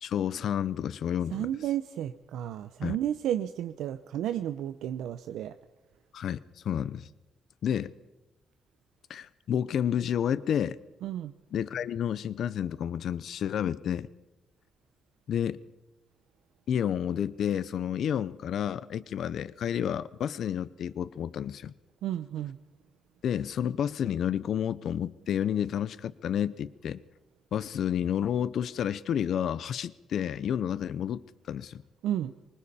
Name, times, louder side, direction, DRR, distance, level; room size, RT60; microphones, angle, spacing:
voice 1, 0.0-1.5 2.8-3.0 6.1-7.1 7.6-7.9 9.1-10.8 11.5-14.1 15.3-15.6 16.7-21.7 23.2-27.0 27.5-31.8, left 9 dB, 60° left, 16 dB, 0.6 m, -30 dB
voice 2, 1.3-5.5 11.0-11.3 22.0-22.6 32.0-32.3, right 11 dB, 90° right, 10 dB, 0.7 m, -32 dB
25.5 x 23.5 x 4.3 m, 1.1 s
cardioid pair, 150°, 0 cm